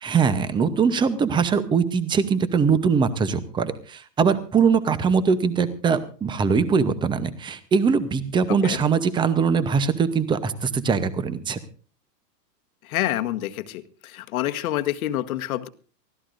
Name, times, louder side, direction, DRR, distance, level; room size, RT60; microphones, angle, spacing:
voice 1, 0.0-11.6, right 6 dB, 10° right, 13 dB, 0.7 m, -22 dB
voice 2, 12.8-15.7, left 14 dB, 60° left, 10 dB, 1.3 m, -27 dB
24.0 x 16.0 x 2.6 m, 0.39 s
hypercardioid pair, 140°, 49 cm